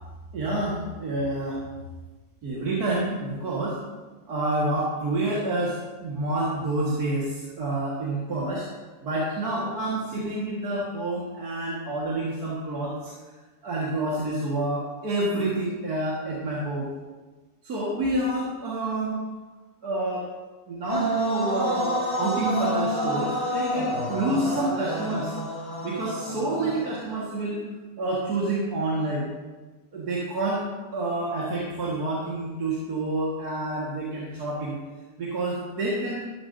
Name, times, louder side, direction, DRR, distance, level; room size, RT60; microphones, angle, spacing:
voice 1, 0.3-1.6 2.4-3.8 4.3-8.7 9.0-13.1 13.6-16.9 17.6-19.2 19.8-20.3 20.7-25.3 25.8-27.6 28.0-29.3 29.9-30.6 30.9-34.8 35.2-36.2, right 2 dB, 65° right, -6 dB, 2.3 m, -28 dB
sound 1, 20.9-27.0, equal, 20° left, 4.4 m, -28 dB
13.5 x 13.0 x 2.7 m, 1.3 s
omnidirectional pair, 1.7 m